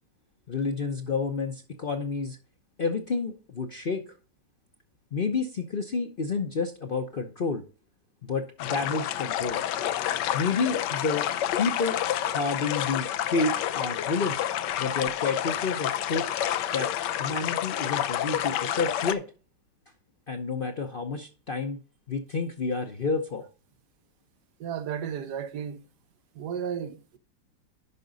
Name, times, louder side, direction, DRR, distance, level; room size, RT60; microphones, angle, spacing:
voice 1, 0.5-2.4 2.8-4.0 5.1-7.6 8.3-9.6 10.3-11.2 11.6-12.0 12.3-14.5 14.8-16.2 16.7-16.9 17.2-19.2 20.3-21.8 22.1-23.5, left 4 dB, 45° left, 0.7 m, -29 dB
sound 1, 8.6-19.1, left 11 dB, 90° left, 1.3 m, -29 dB
voice 2, 24.6-25.8 26.3-27.2, right 8 dB, 70° right, 1.3 m, -33 dB
11.0 x 5.2 x 3.9 m
omnidirectional pair, 1.8 m